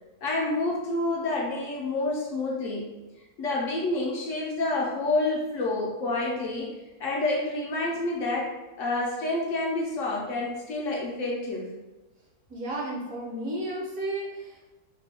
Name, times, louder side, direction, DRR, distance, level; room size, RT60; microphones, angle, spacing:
voice 1, 0.2-2.9 3.4-6.7 7.0-8.5 8.8-11.7, left 2 dB, 65° left, -3 dB, 0.8 m, -28 dB
voice 2, 12.5-14.7, right 1 dB, 65° right, -3 dB, 1.2 m, -33 dB
3.0 x 2.2 x 4.0 m, 1.1 s
omnidirectional pair, 1.6 m